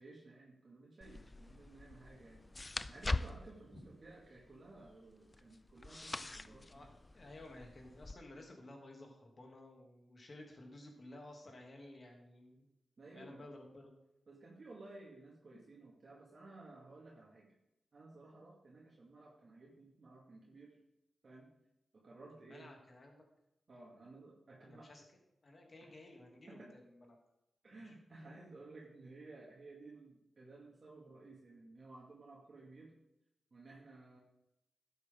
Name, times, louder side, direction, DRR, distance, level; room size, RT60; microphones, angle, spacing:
voice 1, 0.0-6.9 13.0-13.5 14.3-17.5 17.9-20.8 21.2-21.5 21.9-22.7 23.7-24.9 26.5-26.7 27.6-32.9 33.5-34.2, right 2 dB, 50° right, -4 dB, 2.2 m, -55 dB
sound 1, 1.0-8.1, left 2 dB, 25° left, 0.4 m, -44 dB
voice 2, 7.1-12.7 13.1-13.9 22.3-23.3 24.6-25.0 25.4-27.2 27.7-27.9, left 1 dB, 45° left, 1 dB, 2.7 m, -54 dB
12.0 x 8.1 x 3.8 m, 0.87 s
cardioid pair, 75°, 0 cm